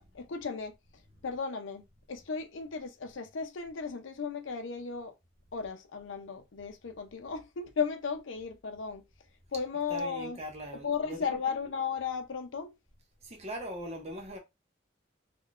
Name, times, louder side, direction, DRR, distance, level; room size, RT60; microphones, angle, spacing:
voice 1, 0.1-0.7 1.2-1.8 2.1-5.1 5.5-9.0 9.5-10.4 10.8-12.7, left 5 dB, 80° left, 0.6 m, -35 dB
voice 2, 9.9-11.6 13.2-14.4, right 1 dB, 35° right, 0.7 m, -41 dB
3.7 x 2.3 x 2.4 m
head